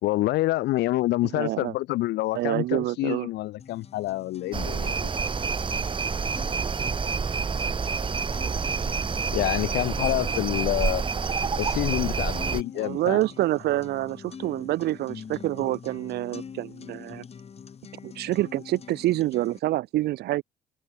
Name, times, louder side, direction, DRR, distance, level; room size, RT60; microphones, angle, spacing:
voice 1, 0.0-5.1 9.3-11.0 11.6-13.2, left 17 dB, 80° left, 3.5 m, -27 dB
voice 2, 1.3-1.7 2.3-3.3 12.7-17.2 18.0-20.4, right 16 dB, 75° right, 1.5 m, -27 dB
sound 1, 3.6-19.6, left 6 dB, 40° left, 5.5 m, -45 dB
sound 2, 4.5-12.6, right 5 dB, 30° right, 3.4 m, -28 dB
open air
cardioid pair, 110°, 17 cm